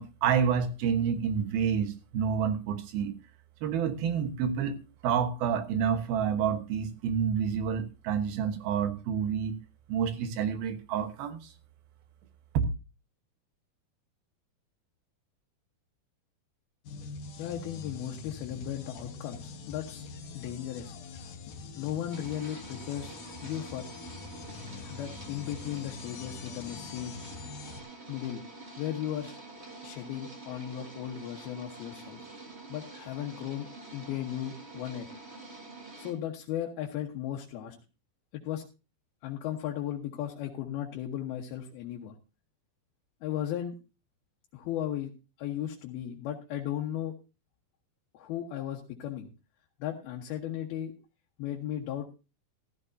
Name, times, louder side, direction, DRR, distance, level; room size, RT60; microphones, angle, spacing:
voice 1, 0.0-3.1 3.6-4.8 5.0-9.5 9.9-11.4 12.5-12.6, right 7 dB, 80° right, 9 dB, 3.1 m, -28 dB
sound 1, 16.9-27.8, left 4 dB, 65° left, 2.7 m, -44 dB
voice 2, 17.4-20.0 20.3-20.9 21.8-23.2 23.4-23.9 24.9-27.1 28.1-28.4 28.8-29.4 29.8-32.3 32.7-35.1 36.0-37.8 38.3-38.6 39.2-42.1 43.2-43.8 44.5-45.1 45.4-47.1 48.1-49.3 49.8-50.9 51.4-52.1, left 11 dB, 85° left, 1 dB, 3.2 m, -36 dB
sound 2, 22.1-36.1, right 3 dB, 30° right, 1.3 m, -47 dB
14.5 x 14.0 x 2.7 m, 0.30 s
omnidirectional pair, 4.3 m